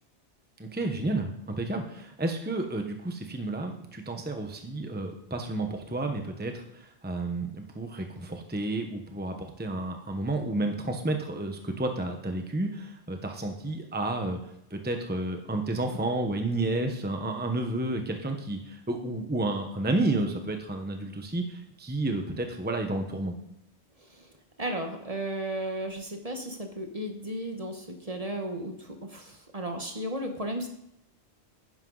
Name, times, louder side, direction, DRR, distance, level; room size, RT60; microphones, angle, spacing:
voice 1, 0.6-14.4 14.7-23.4, right 2 dB, 10° right, 4 dB, 1.1 m, -31 dB
voice 2, 24.6-30.7, right 1 dB, 35° right, 4 dB, 1.3 m, -34 dB
12.0 x 10.0 x 4.0 m, 0.77 s
omnidirectional pair, 1.1 m